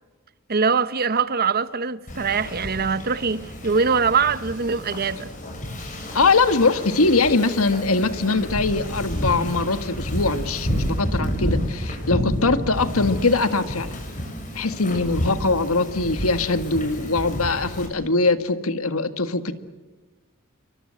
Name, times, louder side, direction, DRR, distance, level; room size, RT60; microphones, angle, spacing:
voice 1, 0.5-5.3, right 5 dB, 45° right, 1.0 m, -23 dB
Wind / Ocean, 2.1-17.9, equal, 35° left, 7.2 m, -30 dB
voice 2, 6.1-14.0 14.6-19.5, left 3 dB, 75° left, 1.9 m, -22 dB
28.0 x 24.0 x 7.8 m
head